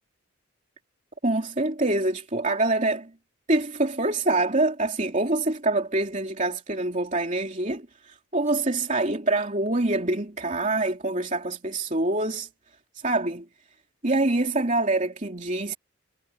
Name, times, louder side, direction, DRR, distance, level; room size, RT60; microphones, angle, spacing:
voice 1, 1.2-3.1 3.5-12.5 13.0-13.4 14.0-15.8, right 2 dB, 35° right, 3.0 m, -25 dB
head